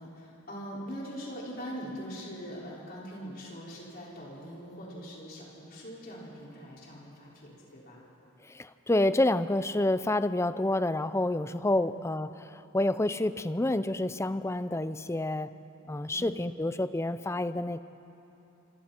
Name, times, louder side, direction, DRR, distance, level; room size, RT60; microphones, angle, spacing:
voice 1, 0.0-8.0 11.8-11.9 16.1-16.4, equal, 45° left, -6 dB, 5.3 m, -42 dB
voice 2, 8.4-15.6 15.9-17.8, left 1 dB, 10° left, 13 dB, 0.4 m, -28 dB
26.5 x 26.0 x 4.4 m, 3.0 s
head